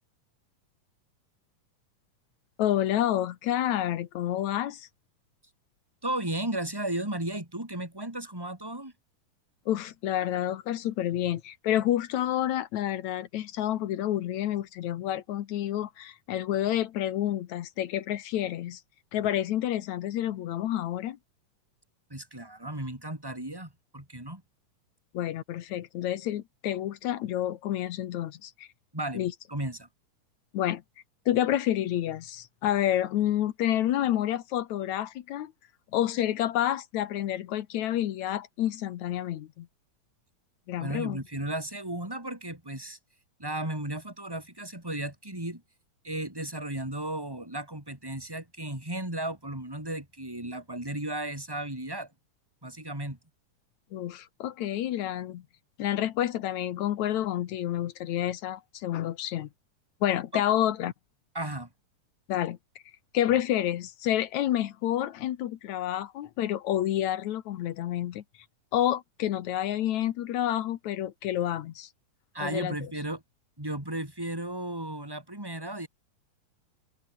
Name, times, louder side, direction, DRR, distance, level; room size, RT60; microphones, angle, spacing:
voice 1, 2.6-4.9 9.7-18.8 19.1-21.2 25.1-28.7 29.1-29.3 30.5-30.8 31.3-35.5 35.9-39.7 40.7-41.2 53.9-55.4 55.8-59.5 60.0-60.9 62.3-62.6 63.1-68.2 68.7-71.9 72.4-72.8, left 12 dB, 70° left, 2.3 m, -29 dB
voice 2, 6.0-8.9 22.1-24.4 28.9-29.9 40.8-43.0 43.4-45.6 46.0-52.1 52.6-53.2 60.3-60.4 61.3-61.7 72.3-73.2 73.6-75.9, right 1 dB, 5° right, 4.9 m, -35 dB
omnidirectional pair, 3.6 m